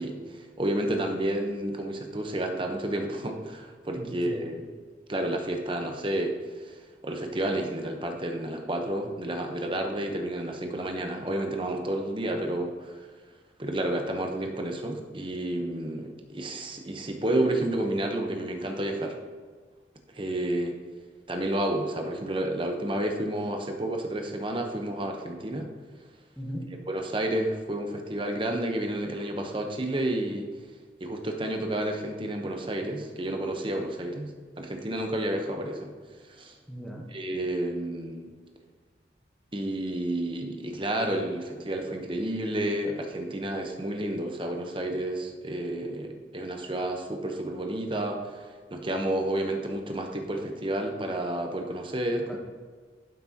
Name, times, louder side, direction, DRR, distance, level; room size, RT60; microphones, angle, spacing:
voice 1, 0.0-4.6 5.1-13.0 13.6-19.2 20.1-20.7 21.3-25.7 26.9-30.5 31.0-34.3 34.6-35.9 36.3-36.5 37.1-38.3 39.5-52.4, right 1 dB, 30° right, 3 dB, 0.9 m, -30 dB
voice 2, 3.9-4.5 26.4-26.6 36.7-37.1 52.3-52.4, equal, ahead, -2 dB, 1.1 m, -38 dB
11.5 x 6.0 x 2.9 m, 1.6 s
head